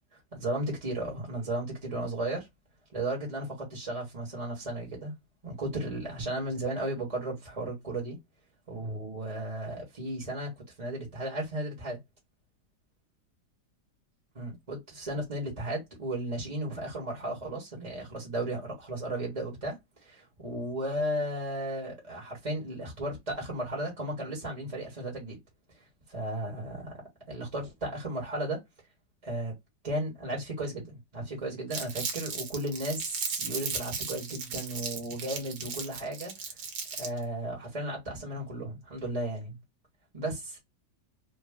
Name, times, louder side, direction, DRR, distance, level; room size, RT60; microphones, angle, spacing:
voice 1, 0.3-2.5 2.9-5.1 5.4-8.2 8.7-10.5 10.8-12.0 14.3-19.8 20.0-25.4 26.1-27.0 27.3-28.6 29.2-29.5 29.8-36.5 37.0-39.6 40.1-40.6, right 1 dB, 25° right, 1.1 m, -34 dB
Crumpling crinkling, 31.7-37.2, right 5 dB, 70° right, 1.4 m, -36 dB
3.3 x 2.2 x 3.4 m
omnidirectional pair, 1.9 m